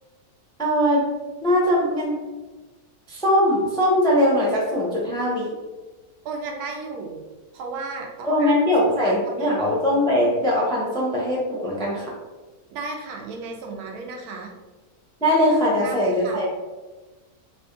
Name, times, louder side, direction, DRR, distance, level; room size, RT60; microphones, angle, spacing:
voice 1, 0.6-1.0 1.4-2.2 3.1-5.5 8.2-12.1 15.2-16.5, left 1 dB, 5° left, -4 dB, 0.3 m, -21 dB
voice 2, 6.2-7.2 7.5-9.7 12.7-14.5 15.6-16.5, right 3 dB, 80° right, 2 dB, 1.1 m, -34 dB
3.3 x 2.4 x 3.7 m, 1.2 s
omnidirectional pair, 1.6 m